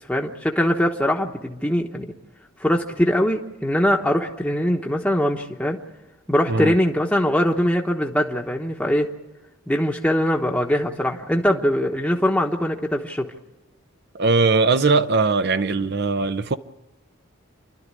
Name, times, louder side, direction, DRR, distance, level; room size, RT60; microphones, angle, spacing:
voice 1, 0.1-2.1 2.6-5.8 6.3-9.1 9.7-13.3, equal, 5° left, 1.0 m, -22 dB
voice 2, 14.1-16.6, right 4 dB, 50° right, 0.7 m, -20 dB
28.5 x 12.5 x 9.7 m
head